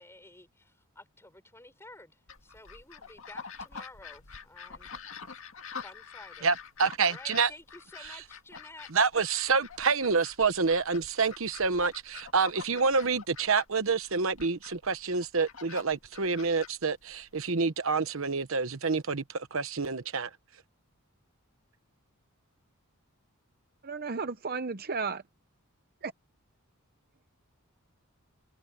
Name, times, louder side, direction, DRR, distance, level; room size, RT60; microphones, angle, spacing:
voice 1, 0.0-4.9 5.8-6.5 7.0-8.9, left 2 dB, 10° left, 5.9 m, -52 dB
sound 1, 2.3-17.5, left 6 dB, 65° left, 2.1 m, -47 dB
voice 2, 6.4-7.5 8.9-20.3, right 4 dB, 65° right, 1.0 m, -28 dB
voice 3, 23.8-25.2 26.0-26.1, right 4 dB, 45° right, 0.8 m, -33 dB
head